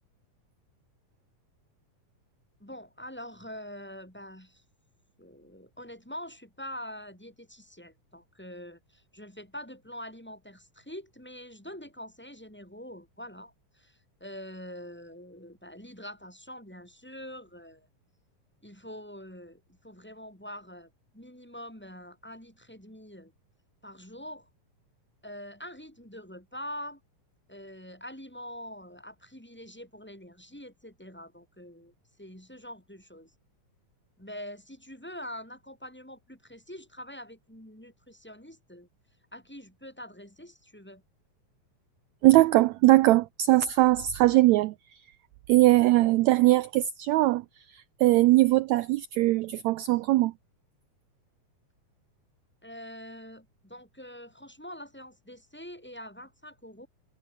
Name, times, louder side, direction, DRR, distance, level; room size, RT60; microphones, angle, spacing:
voice 1, 2.6-4.6 5.2-17.9 18.6-23.3 23.8-24.5 25.2-27.0 27.5-33.3 34.2-38.9 39.3-41.0 52.6-56.9, equal, 5° left, 7.1 m, -44 dB
voice 2, 42.2-45.0 45.5-47.4 47.7-50.3, right 17 dB, 90° right, 1.5 m, -21 dB
omnidirectional pair, 3.8 m